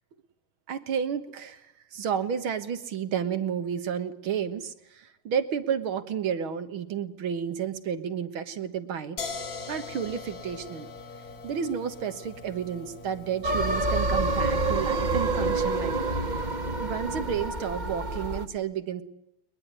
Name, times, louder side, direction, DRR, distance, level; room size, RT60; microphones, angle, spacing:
voice 1, 0.7-9.2 9.7-10.9 11.4-16.2 16.8-19.0, right 8 dB, 70° right, 10 dB, 2.2 m, -31 dB
sound 1, 9.2-15.0, left 4 dB, 45° left, 1.8 m, -41 dB
sound 2, 13.4-18.4, right 2 dB, 25° right, 1.1 m, -27 dB
21.5 x 21.5 x 9.7 m, 0.81 s
omnidirectional pair, 2.4 m